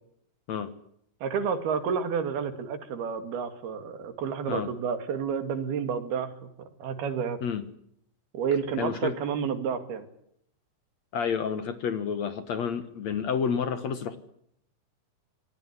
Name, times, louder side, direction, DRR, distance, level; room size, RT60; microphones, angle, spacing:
voice 1, 1.2-7.4 8.3-10.1, right 6 dB, 85° right, 9 dB, 4.3 m, -30 dB
voice 2, 8.8-9.1 11.1-14.2, left 7 dB, 60° left, 12 dB, 2.2 m, -29 dB
27.0 x 18.5 x 9.8 m, 0.72 s
omnidirectional pair, 4.4 m